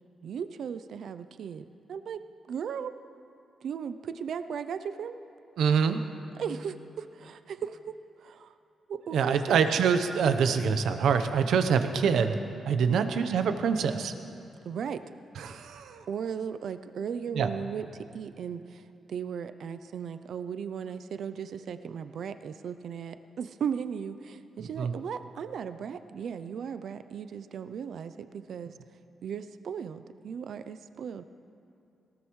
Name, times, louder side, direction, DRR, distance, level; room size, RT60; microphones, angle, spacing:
voice 1, 0.2-2.2 2.5-2.9 3.6-5.2 6.4-8.5 8.9-9.9 12.9-13.1 14.6-15.0 16.1-28.8 29.2-31.2, right 7 dB, 65° right, 11 dB, 0.4 m, -37 dB
voice 2, 5.6-6.0 9.1-12.4 12.6-14.1 15.4-16.0 17.3-17.5 24.6-24.9, right 6 dB, 85° right, 8 dB, 0.8 m, -25 dB
19.0 x 17.5 x 3.1 m, 2.7 s
wide cardioid pair, 140°, 0 cm